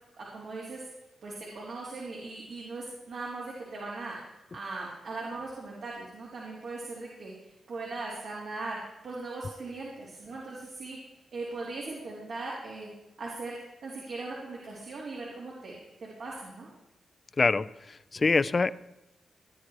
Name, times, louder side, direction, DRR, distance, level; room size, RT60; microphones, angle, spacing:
voice 1, 0.2-0.8 1.2-11.0 11.3-12.9 13.2-13.6 13.8-15.7 16.0-16.7, right 3 dB, 75° right, -5 dB, 3.9 m, -39 dB
voice 2, 17.4-18.7, left 4 dB, 40° left, 16 dB, 0.6 m, -25 dB
18.0 x 10.0 x 4.9 m, 0.96 s
cardioid pair, 85°, 0 cm